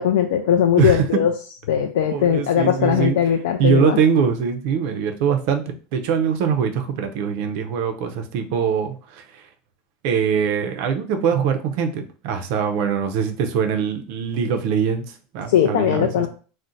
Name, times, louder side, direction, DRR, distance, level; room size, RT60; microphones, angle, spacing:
voice 1, 0.0-1.3 1.7-4.0 15.5-16.3, left 9 dB, 80° left, 4 dB, 0.3 m, -19 dB
voice 2, 2.0-3.2 3.6-9.5 10.0-16.2, right 7 dB, 50° right, 5 dB, 0.4 m, -22 dB
2.5 x 2.1 x 3.9 m, 0.38 s
supercardioid pair, 165°, 0 cm